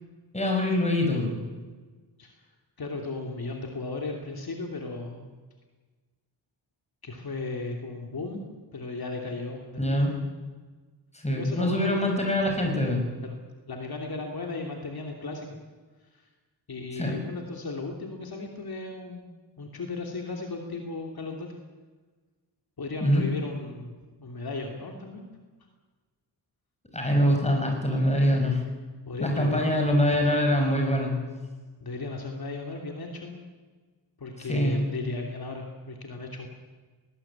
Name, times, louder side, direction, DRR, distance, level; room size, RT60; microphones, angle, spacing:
voice 1, 0.3-1.4 9.8-10.1 11.2-13.1 17.0-17.1 23.0-23.2 26.9-28.6 29.2-31.1 34.5-34.8, equal, 15° left, 2 dB, 5.9 m, -24 dB
voice 2, 2.8-5.2 7.0-10.0 11.4-12.1 13.2-13.4 13.7-15.6 16.1-16.2 16.7-19.3 19.6-21.5 22.8-23.9 24.2-25.2 29.1-29.7 31.8-33.4 34.2-36.5, left 3 dB, 55° left, 2 dB, 2.9 m, -35 dB
20.0 x 19.0 x 8.8 m, 1.3 s
wide cardioid pair, 130°, 43 cm